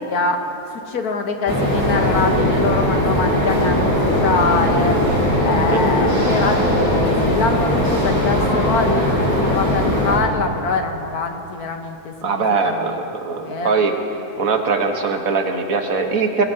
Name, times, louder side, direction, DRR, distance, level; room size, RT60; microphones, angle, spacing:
voice 1, 0.1-0.5 0.9-3.8 4.2-5.0 5.4-13.0 13.4-13.7, left 4 dB, 75° left, 4 dB, 1.6 m, -24 dB
sound 1, 1.5-10.2, left 1 dB, 20° left, 3.9 m, -19 dB
voice 2, 12.2-13.9 14.4-16.4, right 4 dB, 65° right, 4 dB, 1.5 m, -21 dB
23.0 x 19.0 x 2.8 m, 2.9 s
omnidirectional pair, 1.7 m